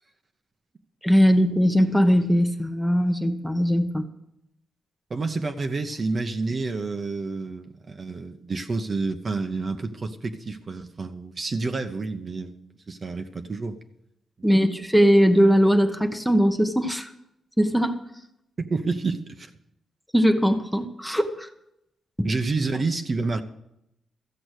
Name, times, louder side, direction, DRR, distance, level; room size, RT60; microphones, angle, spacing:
voice 1, 1.0-4.0 14.4-17.1 17.6-18.0 20.1-21.5 22.2-22.3, equal, ahead, 6 dB, 0.9 m, -20 dB
voice 2, 5.1-12.6 12.9-13.8 14.4-14.5 18.6-19.5 22.2-23.4, right 3 dB, 35° right, 7 dB, 0.9 m, -29 dB
14.0 x 7.8 x 6.4 m, 0.82 s
cardioid pair, 120°, 0 cm